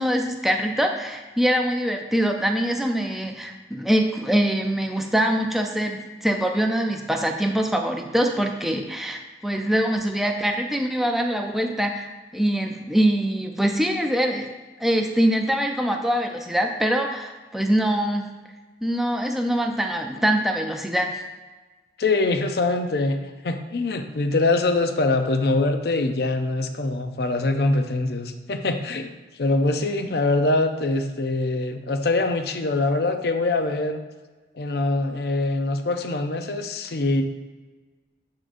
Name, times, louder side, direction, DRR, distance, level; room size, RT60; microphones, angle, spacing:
voice 1, 0.0-14.5 14.8-18.3 18.8-21.2, right 1 dB, ahead, 3 dB, 0.4 m, -23 dB
voice 2, 22.0-23.2 23.4-29.1 29.4-34.0 34.6-37.2, left 2 dB, 55° left, 7 dB, 0.5 m, -23 dB
11.0 x 3.8 x 2.6 m, 1.3 s
head